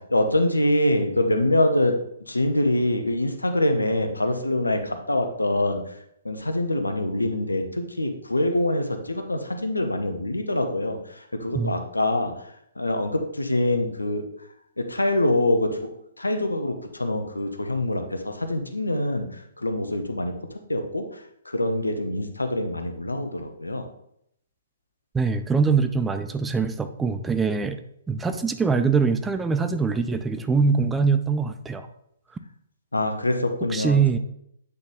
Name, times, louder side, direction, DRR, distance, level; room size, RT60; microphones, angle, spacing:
voice 1, 0.0-2.0 2.3-5.8 6.2-11.0 11.3-12.3 12.8-14.2 14.8-15.9 16.2-20.3 20.7-21.1 21.5-23.8 32.9-34.0, left 1 dB, 90° left, 6 dB, 0.9 m, -24 dB
voice 2, 25.1-27.8 28.1-31.9 33.7-34.2, right 5 dB, 10° right, 9 dB, 0.4 m, -23 dB
8.3 x 4.1 x 3.5 m, 0.74 s
figure-of-eight pair, 125°, 0 cm